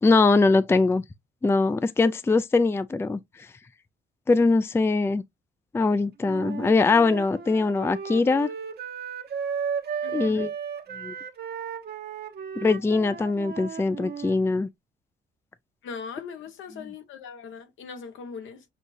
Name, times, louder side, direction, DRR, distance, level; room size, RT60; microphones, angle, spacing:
voice 1, 0.0-1.0 1.4-3.5 4.3-5.2 5.7-8.5 10.1-10.5 11.0-11.1 12.6-14.7, left 3 dB, 10° left, 0.4 m, -22 dB
Wind instrument woodwind instrument, 6.2-14.4, right 7 dB, 55° right, 0.9 m, -35 dB
voice 2, 10.0-10.5 15.8-18.6, left 5 dB, 75° left, 1.2 m, -40 dB
6.3 x 2.7 x 2.5 m
cardioid pair, 90°, 20 cm